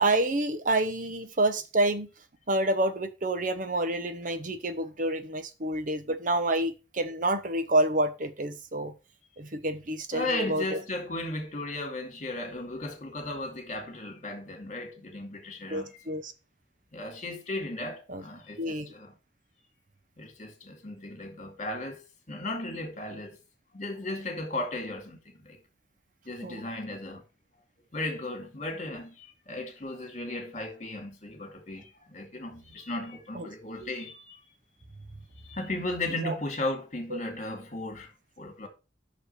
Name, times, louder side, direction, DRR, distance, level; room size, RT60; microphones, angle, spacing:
voice 1, 0.0-2.1 2.5-8.9 9.4-10.8 15.7-16.3 18.1-18.2 18.6-18.9 26.4-26.6 33.3-33.5 33.8-33.9 36.2-36.4, right 1 dB, 45° right, 0.8 m, -28 dB
voice 2, 10.1-15.9 16.9-19.1 20.2-23.4 23.7-25.6 26.3-27.2 27.9-34.4 35.4-38.1 38.4-38.7, left 2 dB, 40° left, 2.3 m, -36 dB
6.2 x 5.4 x 6.6 m
head